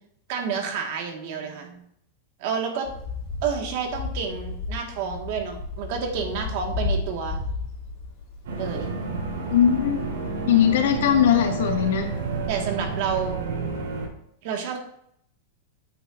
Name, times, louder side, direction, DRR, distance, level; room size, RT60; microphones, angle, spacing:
voice 1, 0.3-1.8 2.4-2.9 3.4-7.4 8.6-9.0 12.5-13.4 14.4-14.8, right 6 dB, 50° right, 3 dB, 1.8 m, -29 dB
Garden Atmo (Propeller Plane passing by), 2.8-10.6 11.0-11.7 12.5-12.6 12.8-12.9, left 3 dB, 40° left, 3.6 m, -34 dB
sound 1, 8.4-14.1, right 4 dB, 80° right, 3.7 m, -30 dB
voice 2, 9.5-10.0 10.5-12.1, left 9 dB, 80° left, 2 dB, 1.9 m, -19 dB
8.9 x 8.6 x 2.6 m, 0.70 s
supercardioid pair, 160°, 0 cm